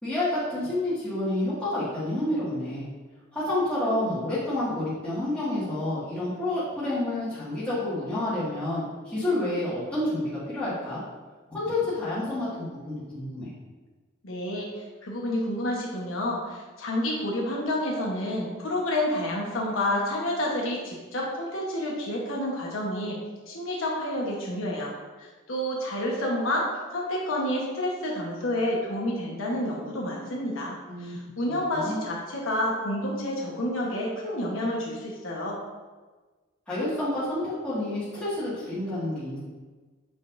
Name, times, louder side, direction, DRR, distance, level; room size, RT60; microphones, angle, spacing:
voice 1, 0.0-2.9 3.3-11.0 11.5-13.5 30.8-31.2 31.5-32.0 36.7-39.4, left 1 dB, 5° left, -12 dB, 1.9 m, -29 dB
voice 2, 14.2-14.7 15.0-23.2 23.5-24.9 25.2-35.6, left 1 dB, 75° left, -3 dB, 1.2 m, -29 dB
7.4 x 5.3 x 2.6 m, 1.3 s
head